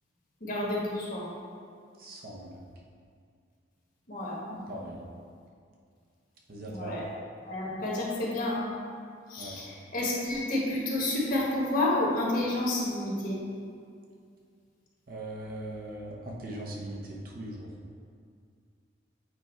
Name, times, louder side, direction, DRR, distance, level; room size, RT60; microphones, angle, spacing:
voice 1, 0.4-1.3 4.1-4.6 6.6-7.0 7.4-8.7 9.3-13.4, left 1 dB, 50° left, -5 dB, 1.4 m, -30 dB
voice 2, 2.0-2.6 4.7-5.0 6.5-7.0 9.4-9.6 15.1-17.7, right 1 dB, 50° right, -3 dB, 1.0 m, -40 dB
8.1 x 3.5 x 4.5 m, 2.3 s
head